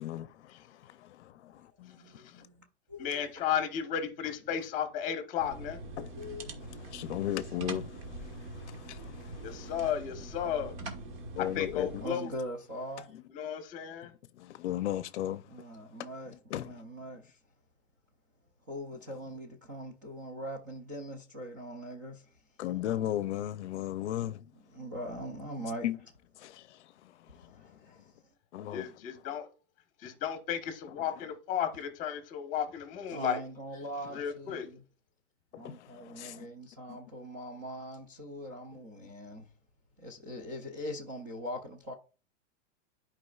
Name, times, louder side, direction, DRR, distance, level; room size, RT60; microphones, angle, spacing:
voice 1, 0.0-2.5 6.0-6.3 6.7-9.7 11.3-12.0 14.3-15.6 16.0-16.9 22.6-24.5 25.8-26.0 26.4-28.1 28.5-29.3 31.0-31.3 35.5-36.5 36.9-37.0, left 12 dB, 65° left, 0.6 m, -37 dB
voice 2, 1.9-3.3 5.9-6.5 12.0-13.1 15.5-17.4 18.7-22.4 24.7-25.9 27.3-28.2 33.1-34.8 35.5-39.5 40.0-41.9, equal, 20° right, 0.3 m, -42 dB
voice 3, 3.0-5.8 9.4-10.7 11.5-12.3 13.3-14.1 28.7-29.5 30.0-33.4 34.1-34.7, left 9 dB, 20° left, 1.1 m, -34 dB
sound 1, 5.4-12.1, right 2 dB, 50° right, 1.6 m, -43 dB
11.5 x 4.9 x 2.3 m
supercardioid pair, 170°, 37 cm